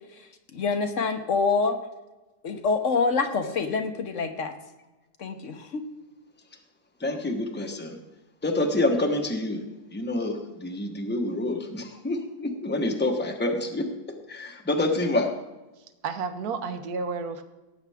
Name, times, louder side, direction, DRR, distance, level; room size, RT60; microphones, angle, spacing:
voice 1, 0.5-1.8 2.4-4.5 5.2-5.8, left 4 dB, 50° left, 6 dB, 1.2 m, -26 dB
voice 2, 7.0-8.0 8.4-9.6 9.9-15.3, left 2 dB, 10° left, 3 dB, 0.9 m, -27 dB
voice 3, 15.8-17.4, right 5 dB, 65° right, 10 dB, 1.4 m, -32 dB
18.5 x 8.8 x 3.5 m, 1.1 s
omnidirectional pair, 1.8 m